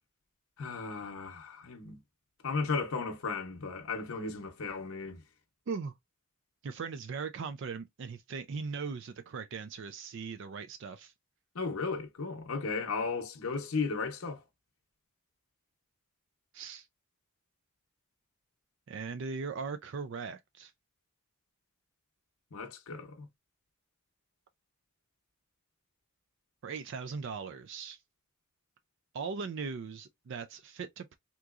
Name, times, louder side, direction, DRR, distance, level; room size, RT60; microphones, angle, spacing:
voice 1, 0.6-2.0 2.4-5.2 11.5-14.4 22.5-23.3, left 4 dB, 85° left, 0.7 m, -35 dB
voice 2, 6.6-11.1 16.5-16.9 18.9-20.7 26.6-28.0 29.1-31.1, right 5 dB, 60° right, 0.4 m, -39 dB
3.6 x 2.9 x 2.4 m
head